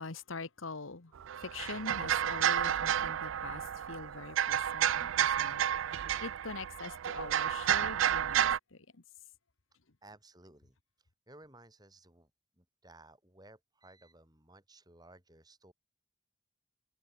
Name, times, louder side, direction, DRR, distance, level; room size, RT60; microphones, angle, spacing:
voice 1, 0.0-9.0, left 4 dB, 80° left, 1.4 m, -44 dB
sound 1, 1.2-8.6, right 10 dB, 75° right, 0.4 m, -31 dB
voice 2, 10.0-10.8 11.3-12.3 12.6-15.7, right 2 dB, 20° right, 7.3 m, -57 dB
head